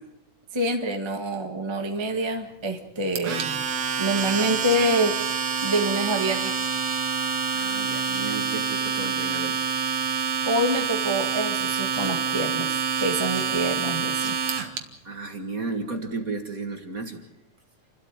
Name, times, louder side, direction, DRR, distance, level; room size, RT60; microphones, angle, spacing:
voice 1, 0.5-3.6 4.0-5.2 5.6-6.5 10.4-14.4, right 1 dB, 15° right, 4 dB, 1.0 m, -26 dB
Domestic sounds home sounds, 3.2-14.8, right 6 dB, 60° right, 2.7 m, -27 dB
voice 2, 7.5-9.6 15.0-17.2, right 3 dB, 35° right, 5 dB, 1.8 m, -33 dB
29.5 x 13.0 x 9.0 m, 0.88 s
omnidirectional pair, 3.4 m